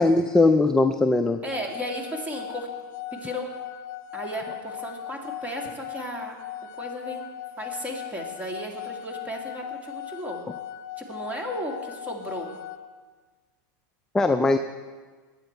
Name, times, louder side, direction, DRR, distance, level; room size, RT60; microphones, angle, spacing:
voice 1, 0.0-1.4 14.1-14.6, left 2 dB, 5° left, 7 dB, 0.4 m, -20 dB
voice 2, 1.4-2.7 3.1-3.5 4.1-6.4 6.8-7.3 7.6-10.4 11.0-12.5, equal, 15° right, 0 dB, 2.2 m, -34 dB
sound 1, 1.5-12.8, left 11 dB, 60° left, 0.7 m, -38 dB
20.5 x 9.0 x 4.5 m, 1.4 s
supercardioid pair, 140°, 11 cm